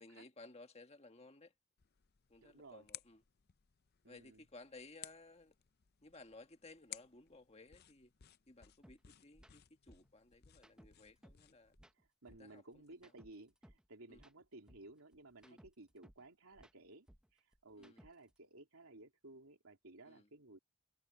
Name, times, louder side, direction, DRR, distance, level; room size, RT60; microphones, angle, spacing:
voice 1, 0.0-1.5 2.3-3.2 4.0-5.6 6.0-8.1 8.5-11.7 12.4-13.1 14.1-14.2 15.4-15.6 17.8-18.0 20.1-20.3, left 2 dB, 30° left, 1.7 m, -58 dB
sound 1, 1.8-11.8, left 13 dB, 50° left, 0.6 m, -58 dB
voice 2, 2.4-2.9 4.0-4.4 12.0-17.1 17.3-20.6, right 2 dB, 85° right, 3.1 m, -57 dB
sound 2, 8.8-9.0 9.3-9.5 9.9-11.5 11.7-13.9 14.1-16.3 16.5-18.4, equal, 5° right, 0.8 m, -63 dB
head